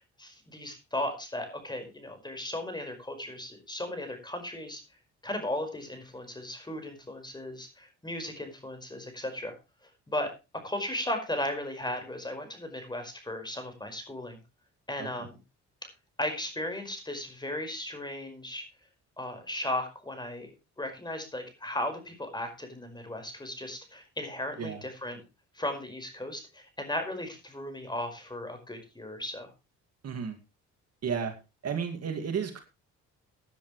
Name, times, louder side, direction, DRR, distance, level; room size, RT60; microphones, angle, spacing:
voice 1, 0.0-4.8 5.2-9.5 10.1-14.4 14.9-15.4 16.2-18.6 19.2-20.5 20.8-25.2 25.5-29.5, left 1 dB, 15° left, 6 dB, 5.2 m, -36 dB
voice 2, 30.0-30.4 31.0-31.3 31.6-32.6, right 6 dB, 55° right, 5 dB, 2.4 m, -33 dB
16.5 x 10.5 x 3.2 m, 0.28 s
cardioid pair, 90°, 30 cm